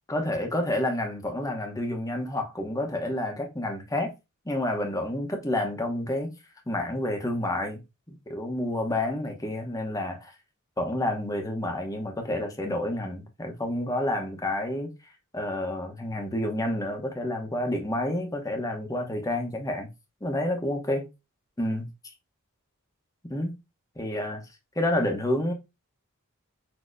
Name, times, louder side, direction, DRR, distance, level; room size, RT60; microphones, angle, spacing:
voice 1, 0.1-4.1 4.4-6.3 6.7-7.8 8.1-10.3 10.8-14.9 15.3-19.9 20.2-21.0 21.6-21.9 23.3-23.6 24.0-24.4 24.7-25.5, left 1 dB, 15° left, 0.9 m, -29 dB
6.2 x 2.8 x 2.5 m
head